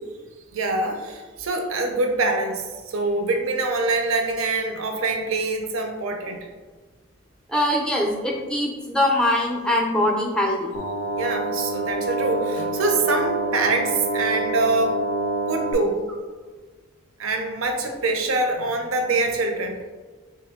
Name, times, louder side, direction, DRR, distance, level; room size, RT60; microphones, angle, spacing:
voice 1, 0.5-6.4 11.2-15.0 15.5-16.0 17.2-19.8, right 3 dB, 90° right, 4 dB, 0.5 m, -24 dB
voice 2, 7.5-10.7, left 1 dB, 5° left, 0 dB, 0.5 m, -22 dB
sound 1, 10.7-15.7, right 2 dB, 90° left, 0.5 m, -27 dB
3.0 x 2.9 x 3.5 m, 1.4 s
head